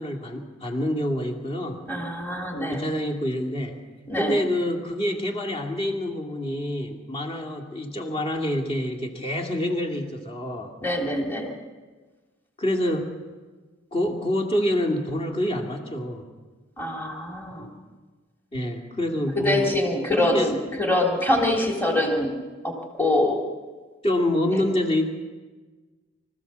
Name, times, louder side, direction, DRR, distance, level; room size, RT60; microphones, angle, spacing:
voice 1, 0.0-1.8 2.7-3.8 4.2-10.7 12.6-13.1 13.9-16.3 17.6-17.7 18.5-19.7 20.2-20.5 24.0-25.1, left 1 dB, 30° left, 3 dB, 2.6 m, -27 dB
voice 2, 1.9-2.9 4.1-4.4 10.8-11.5 16.8-17.7 19.3-22.3 22.6-23.4 24.5-24.6, left 1 dB, 10° left, 0 dB, 3.4 m, -24 dB
25.5 x 15.0 x 7.0 m, 1.4 s
head